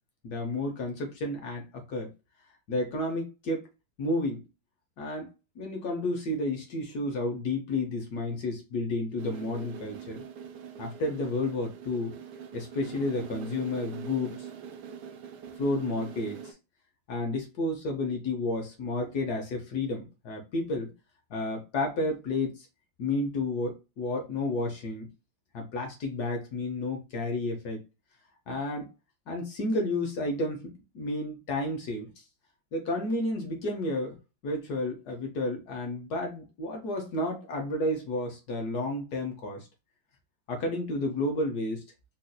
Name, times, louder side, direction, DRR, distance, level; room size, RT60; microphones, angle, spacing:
voice 1, 0.2-2.1 2.7-3.7 4.0-4.4 5.0-5.3 5.6-10.2 10.8-12.2 12.5-14.5 15.6-16.5 17.1-20.9 21.3-22.7 23.0-25.1 25.5-27.8 28.5-28.9 29.3-32.1 32.7-34.2 34.4-39.7 40.5-41.8, left 2 dB, 60° left, 1.2 m, -31 dB
sound 1, 9.2-16.5, right 8 dB, 70° right, 1.1 m, -43 dB
4.2 x 2.5 x 2.2 m
omnidirectional pair, 2.2 m